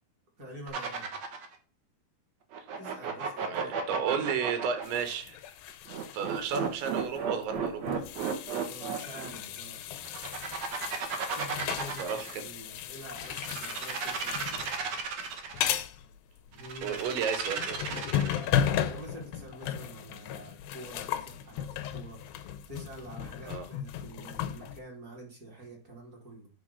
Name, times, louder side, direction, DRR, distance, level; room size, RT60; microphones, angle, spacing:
voice 1, 0.4-1.1 2.8-4.2 8.6-9.9 11.3-14.9 16.5-17.0 18.7-26.5, right 1 dB, 30° right, -1 dB, 1.9 m, -47 dB
sound 1, 0.7-1.6 2.5-5.0 5.9-9.3 10.0-12.4 13.2-15.7 16.6-18.5, right 6 dB, 70° right, 1.6 m, -34 dB
voice 2, 3.5-5.4 6.1-7.9 12.0-12.4 16.8-18.0 23.4-23.7, right 7 dB, 90° right, 8 dB, 3.7 m, -33 dB
sound 2, 4.8-24.8, left 10 dB, 85° left, 2.0 m, -36 dB
9.5 x 3.6 x 6.7 m, 0.38 s
omnidirectional pair, 5.1 m